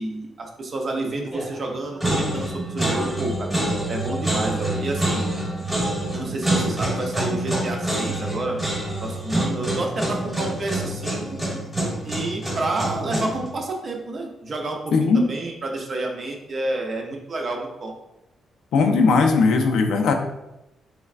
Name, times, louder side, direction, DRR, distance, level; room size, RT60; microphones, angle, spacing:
voice 1, 0.0-5.2 6.1-8.6 9.0-11.4 12.0-17.9, right 2 dB, 35° right, 1 dB, 0.4 m, -29 dB
sound 1, 1.3-1.7 2.0-13.5, right 1 dB, ahead, 0.9 m, -26 dB
voice 2, 14.9-15.2 18.7-20.1, left 4 dB, 70° left, 4 dB, 0.4 m, -18 dB
3.3 x 3.1 x 2.4 m, 0.91 s
cardioid pair, 170°, 0 cm